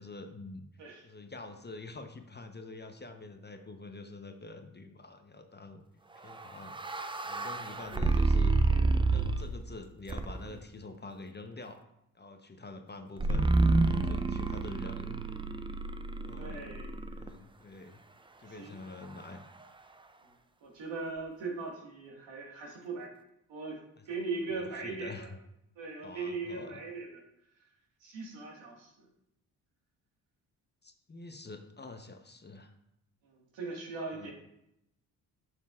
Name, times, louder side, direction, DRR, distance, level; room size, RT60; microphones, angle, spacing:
voice 1, 0.0-0.6 1.0-5.8 6.2-6.8 7.2-8.5 9.0-11.8 12.1-13.5 13.8-15.2 16.2-16.8 17.2-18.0 18.4-19.5 24.5-25.3 26.0-26.8 30.8-32.7 34.1-34.3, left 3 dB, 20° left, 6 dB, 0.8 m, -46 dB
sound 1, 6.3-9.6 10.1-10.6 13.2-17.3, right 3 dB, 10° right, 0.5 m, -29 dB
voice 2, 16.4-16.9 18.5-18.8 20.6-23.1 23.5-23.8 24.1-25.3 25.8-27.2 28.0-29.1 33.3-34.3, right 3 dB, 70° right, -1 dB, 1.8 m, -39 dB
7.0 x 6.6 x 2.4 m, 0.80 s
hypercardioid pair, 40°, 46 cm